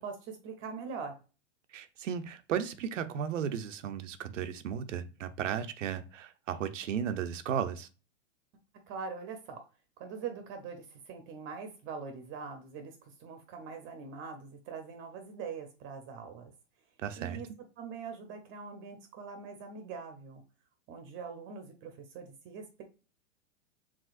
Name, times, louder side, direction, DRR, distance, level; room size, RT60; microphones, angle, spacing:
voice 1, 0.0-1.1 8.9-9.6 10.0-16.5 17.2-17.5 17.8-20.4 20.9-22.8, right 5 dB, 35° right, 0.8 m, -43 dB
voice 2, 1.7-7.9 17.0-17.4, right 8 dB, 90° right, 0.7 m, -35 dB
5.0 x 3.5 x 2.5 m
hypercardioid pair, 135°, 36 cm